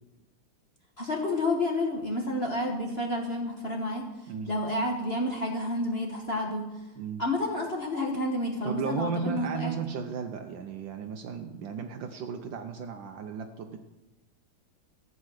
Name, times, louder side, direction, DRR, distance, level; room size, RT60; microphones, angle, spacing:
voice 1, 1.0-4.1 4.5-6.8 7.2-9.8, left 1 dB, 35° left, -1 dB, 1.4 m, -30 dB
voice 2, 8.6-13.8, right 6 dB, 75° right, 5 dB, 1.5 m, -35 dB
14.0 x 8.7 x 6.4 m, 1.1 s
omnidirectional pair, 2.1 m